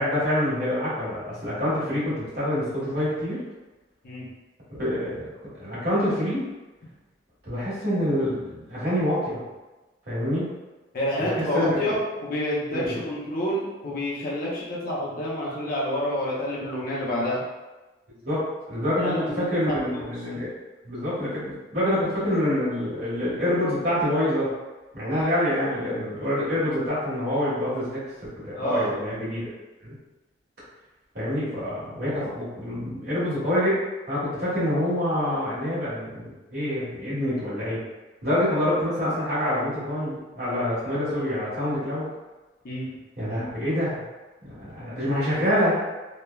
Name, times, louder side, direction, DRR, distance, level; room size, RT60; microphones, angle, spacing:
voice 1, 0.0-3.4 4.8-5.3 5.6-6.4 7.4-9.5 10.1-10.5 11.2-11.8 12.7-13.0 18.2-18.4 18.7-20.5 20.8-24.5 24.9-28.0 28.4-29.5 29.8-29.9 31.1-33.8 34.1-37.8 38.2-42.1 43.2-44.0 44.4-45.7, left 1 dB, 55° right, -9 dB, 1.4 m, -26 dB
voice 2, 10.9-17.4 19.0-20.1 28.5-28.9 42.6-42.9, left 1 dB, 50° left, -5 dB, 0.6 m, -28 dB
3.1 x 2.2 x 2.2 m, 1.2 s
head